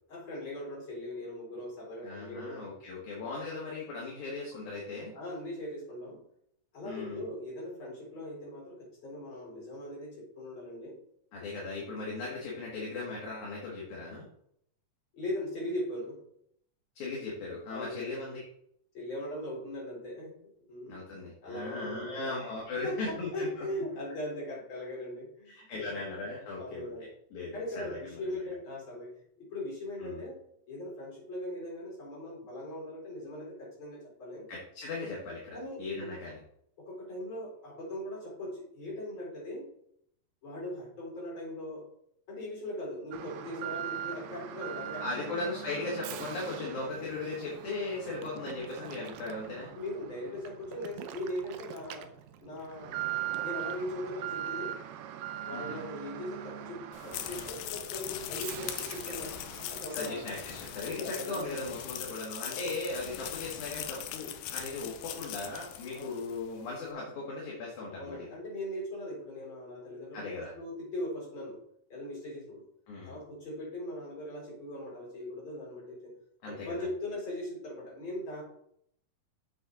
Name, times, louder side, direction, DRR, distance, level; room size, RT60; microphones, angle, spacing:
voice 1, 0.1-2.7 5.1-6.2 6.7-11.0 15.1-16.2 17.7-18.2 18.9-20.3 20.7-21.0 21.4-22.4 22.8-26.0 26.6-27.1 27.5-30.4 30.7-34.5 35.5-36.1 36.8-39.6 40.4-41.9 42.3-45.3 49.7-52.1 52.4-53.0 53.4-54.8 55.4-59.4 59.7-60.2 60.7-61.5 62.5-62.8 65.9-66.2 68.0-71.6 71.9-72.6 73.0-76.1 76.5-78.4, left 1 dB, 35° left, -4 dB, 4.6 m, -40 dB
voice 2, 2.0-5.1 6.8-7.2 11.3-14.3 17.0-18.4 20.9-23.7 25.5-26.9 27.3-28.4 30.0-30.2 34.5-36.4 45.0-49.7 55.5-55.8 59.9-68.3 70.1-70.5 72.9-73.2 76.4-76.7, left 3 dB, 60° left, -4 dB, 3.0 m, -38 dB
Alarm, 43.1-61.8 62.1-62.2 62.8-62.9, right 11 dB, 85° right, 2.5 m, -41 dB
sound 1, 56.9-66.5, left 11 dB, 85° left, 2.5 m, -41 dB
7.7 x 7.2 x 3.9 m, 0.70 s
omnidirectional pair, 4.1 m